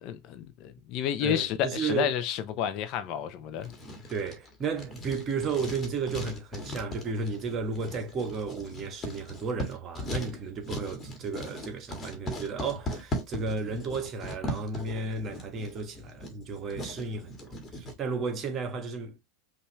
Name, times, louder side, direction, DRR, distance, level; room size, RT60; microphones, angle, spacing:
voice 1, 0.0-3.7, left 9 dB, 45° left, 0.9 m, -30 dB
voice 2, 1.2-2.1 4.1-19.3, right 4 dB, 35° right, 1.4 m, -33 dB
Writing, 3.6-18.0, left 1 dB, 25° left, 1.8 m, -39 dB
5.5 x 2.8 x 3.2 m
hypercardioid pair, 95°, 0 cm